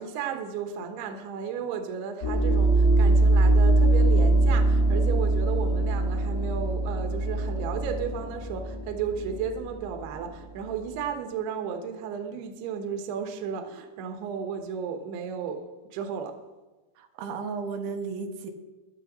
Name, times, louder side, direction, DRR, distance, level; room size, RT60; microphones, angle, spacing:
voice 1, 0.0-16.4, right 7 dB, 70° right, 5 dB, 2.9 m, -34 dB
sound 1, 2.2-10.9, right 2 dB, 60° left, 3.3 m, -23 dB
voice 2, 17.0-18.5, right 5 dB, 90° right, 4 dB, 3.5 m, -34 dB
15.5 x 12.0 x 3.9 m, 1.2 s
omnidirectional pair, 5.3 m